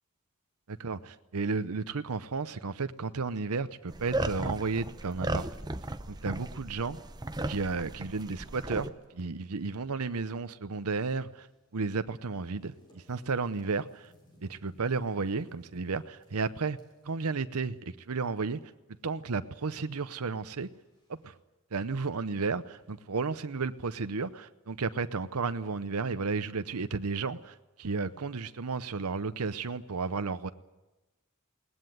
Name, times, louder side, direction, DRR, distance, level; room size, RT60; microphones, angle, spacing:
voice 1, 0.7-5.5 6.1-7.0 7.5-11.5 11.7-14.1 14.4-16.8 17.0-18.6 19.0-20.7 21.1-21.4 21.7-30.5, right 4 dB, 85° right, 12 dB, 0.8 m, -33 dB
sound 1, 3.9-8.9, right 2 dB, 20° right, 0.7 m, -35 dB
sound 2, 9.0-21.4, equal, 20° left, 7.2 m, -65 dB
21.0 x 19.5 x 9.3 m, 1.0 s
head